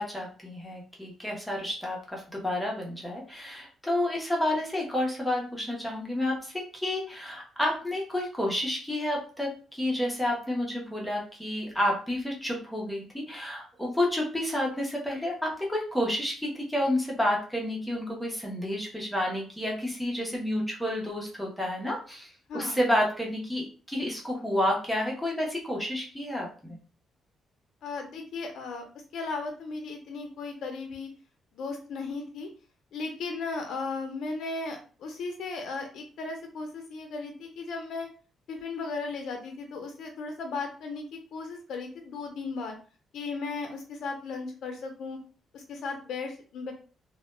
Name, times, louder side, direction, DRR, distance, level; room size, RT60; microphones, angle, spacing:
voice 1, 0.0-26.8, left 1 dB, 5° left, -2 dB, 0.5 m, -30 dB
voice 2, 22.5-22.8 27.8-28.8 29.1-31.1 31.5-32.5 32.9-38.1 38.5-42.7 43.1-45.2 45.5-46.7, left 4 dB, 65° left, 3 dB, 0.4 m, -36 dB
2.0 x 2.0 x 3.1 m, 0.39 s
cardioid pair, 160°, 0 cm